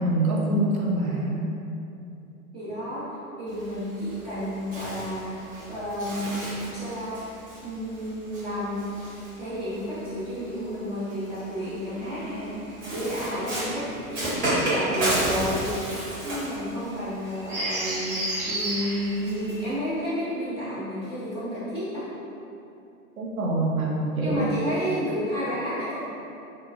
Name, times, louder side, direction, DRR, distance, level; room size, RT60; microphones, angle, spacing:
voice 1, 0.0-1.5 23.2-24.4, right 1 dB, 75° right, -3 dB, 0.7 m, -25 dB
voice 2, 2.5-3.1 3.4-6.4 6.7-8.8 9.4-15.6 15.9-22.1 24.2-26.0, equal, 15° right, -15 dB, 0.4 m, -31 dB
Bird, 3.5-10.0 10.9-19.7, right 1 dB, 55° right, 1.2 m, -32 dB
3.1 x 2.1 x 2.5 m, 2.8 s
figure-of-eight pair, 95°, 43 cm